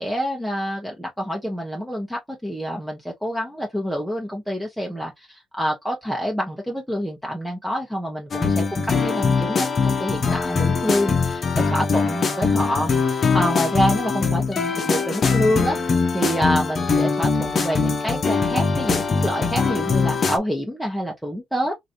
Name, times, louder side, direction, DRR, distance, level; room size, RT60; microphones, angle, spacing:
voice 1, 0.0-21.7, equal, ahead, 0.9 m, -27 dB
sound 1, 8.3-20.4, left 5 dB, 45° left, 0.7 m, -22 dB
3.1 x 2.6 x 2.6 m
cardioid pair, 90°, 0 cm